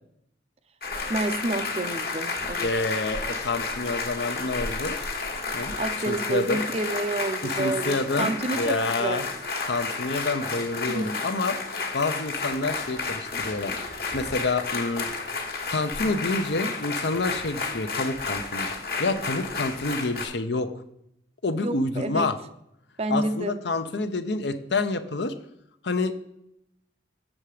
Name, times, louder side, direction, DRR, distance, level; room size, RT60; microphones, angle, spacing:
sound 1, 0.8-20.3, left 4 dB, 55° left, 1.4 m, -31 dB
voice 1, 1.1-2.7 5.8-9.3 10.9-11.1 21.6-22.3 23.0-23.6, right 2 dB, 35° right, 10 dB, 0.5 m, -29 dB
voice 2, 2.6-5.0 5.5-5.8 6.1-6.6 7.5-9.2 9.7-11.6 11.9-13.7 14.1-15.1 15.7-18.7 19.0-20.7 21.4-22.4 23.1-25.3 25.8-26.1, left 3 dB, 75° left, 10 dB, 0.7 m, -28 dB
7.4 x 6.8 x 4.9 m, 0.78 s
head